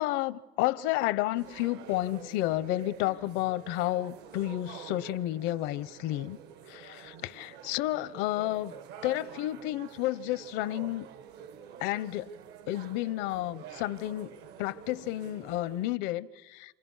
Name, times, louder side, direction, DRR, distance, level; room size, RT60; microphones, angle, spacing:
voice 1, 0.0-6.4 6.7-8.7 9.0-11.1 11.8-12.3 12.7-16.7, left 16 dB, 75° left, 0.9 m, -31 dB
sound 1, 1.3-15.9, right 8 dB, 60° right, 1.2 m, -48 dB
29.0 x 28.5 x 5.6 m
cardioid pair, 155°, 19 cm